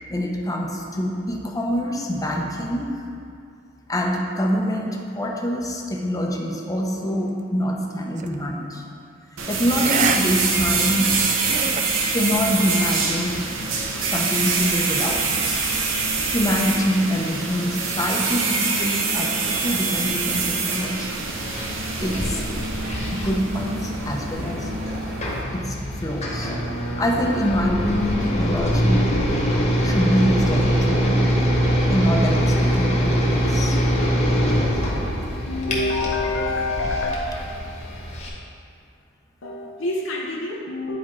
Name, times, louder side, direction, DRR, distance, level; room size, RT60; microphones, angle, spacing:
voice 1, 0.1-2.9 3.9-8.8 9.5-11.1 12.1-13.4 14.0-15.7 16.3-21.2 22.0-22.4 23.1-24.7 25.5-25.8 26.0-29.1 29.8-31.3 31.9-33.8, equal, 20° left, 0 dB, 0.7 m, -25 dB
sound 1, 8.2-8.4 9.7-10.2 10.5-10.6 11.1-11.8, right 6 dB, 40° right, 0.3 m, -26 dB
sound 2, 9.4-25.4, right 4 dB, 75° right, 0.8 m, -25 dB
sound 3, 21.2-38.3, equal, 35° left, 1.3 m, -23 dB
voice 2, 35.5-37.1 39.4-41.0, left 2 dB, 70° left, -3 dB, 0.8 m, -26 dB
9.9 x 4.5 x 3.8 m, 2.4 s
head